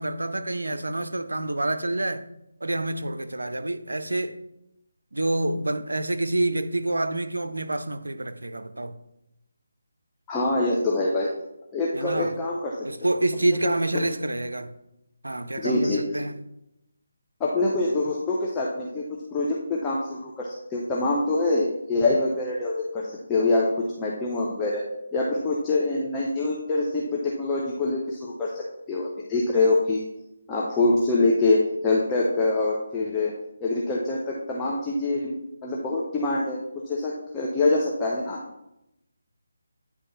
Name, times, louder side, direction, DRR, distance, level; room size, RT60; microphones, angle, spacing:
voice 1, 0.0-2.3 2.6-4.4 5.1-9.0 11.9-12.3 12.8-14.7 15.2-16.4, right 2 dB, 75° right, 0.5 m, -27 dB
voice 2, 10.3-11.3 11.7-12.7 13.9-14.0 15.6-16.0 17.4-24.8 25.1-30.0 30.5-33.3 33.6-36.6 36.9-38.4, left 2 dB, 15° left, 0.6 m, -25 dB
9.2 x 3.3 x 3.1 m
figure-of-eight pair, 150°, 0 cm